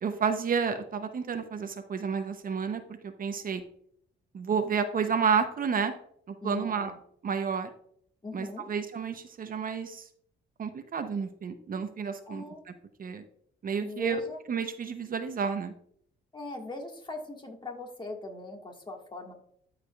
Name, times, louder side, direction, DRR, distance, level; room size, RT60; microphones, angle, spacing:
voice 1, 0.0-2.8 3.2-3.6 4.3-5.9 6.3-6.9 7.2-7.7 8.3-10.1 10.6-12.4 13.0-13.2 13.6-14.2 14.5-15.7, right 6 dB, 45° right, 8 dB, 0.8 m, -30 dB
voice 2, 6.4-7.0 8.2-8.7 12.3-12.6 13.8-14.4 16.3-19.3, left 1 dB, 25° left, 2 dB, 1.6 m, -40 dB
13.5 x 4.9 x 2.3 m, 0.65 s
cardioid pair, 90°, 20 cm